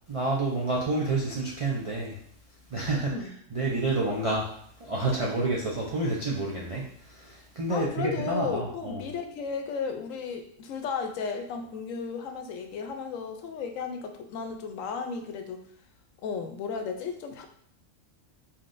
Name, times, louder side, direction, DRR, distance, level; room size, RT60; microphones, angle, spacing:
voice 1, 0.1-2.2 2.7-4.5 4.8-9.1, right 2 dB, 60° right, -3 dB, 0.3 m, -29 dB
voice 2, 2.9-3.3 7.7-15.6 16.2-17.5, left 5 dB, 80° left, 5 dB, 1.0 m, -34 dB
4.2 x 3.7 x 2.5 m, 0.65 s
omnidirectional pair, 1.3 m